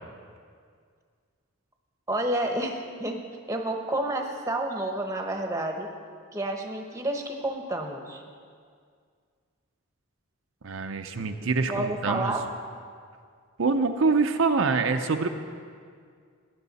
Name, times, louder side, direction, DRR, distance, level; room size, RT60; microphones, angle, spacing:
voice 1, 2.1-3.2 3.5-5.9 6.3-8.2 11.7-12.4, right 1 dB, 15° right, 3 dB, 0.9 m, -30 dB
voice 2, 10.6-12.4 13.6-15.3, right 4 dB, 70° right, 6 dB, 0.6 m, -25 dB
17.0 x 11.0 x 4.1 m, 2.1 s
head